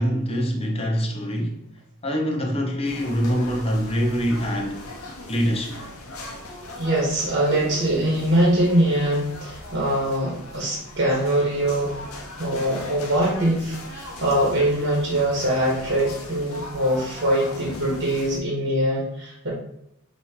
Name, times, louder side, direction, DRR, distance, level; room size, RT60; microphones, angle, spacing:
voice 1, 0.0-1.7 2.0-4.9 5.3-5.8, equal, 30° left, 0.8 m, -24 dB
sound 1, 2.8-18.4, left 1 dB, 70° left, 0.9 m, -39 dB
voice 2, 6.8-12.0 12.4-19.5, right 1 dB, 50° right, 1.2 m, -23 dB
5.4 x 2.9 x 2.8 m
head